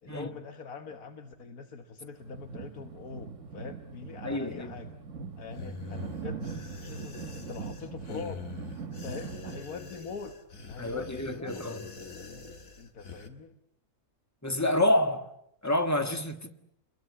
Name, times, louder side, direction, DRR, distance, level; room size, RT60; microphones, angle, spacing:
voice 1, 0.0-5.0 5.4-6.5 6.8-8.4 9.0-10.4 10.7-11.7 12.8-13.6, left 5 dB, 80° left, 7 dB, 1.9 m, -43 dB
sound 1, 2.2-9.6, right 5 dB, 60° right, 1.7 m, -41 dB
voice 2, 4.2-4.7 10.8-11.8 14.4-15.3 15.6-16.5, left 1 dB, 10° left, 8 dB, 1.5 m, -28 dB
sound 2, 5.5-13.3, left 4 dB, 65° left, 2.3 m, -44 dB
29.0 x 22.0 x 8.4 m, 0.79 s
omnidirectional pair, 1.5 m